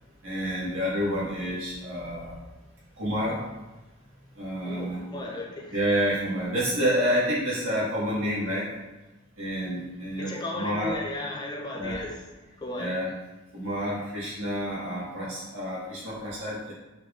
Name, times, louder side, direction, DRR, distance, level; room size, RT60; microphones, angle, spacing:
voice 1, 0.2-2.4 3.0-3.4 4.3-5.0 5.7-8.7 9.4-10.9 11.8-12.0 12.8-13.1 13.5-16.7, equal, 70° right, -7 dB, 1.4 m, -29 dB
voice 2, 4.6-5.8 10.2-12.3 12.6-12.9, left 2 dB, 20° left, -1 dB, 0.4 m, -35 dB
4.4 x 3.4 x 2.4 m, 1.1 s
head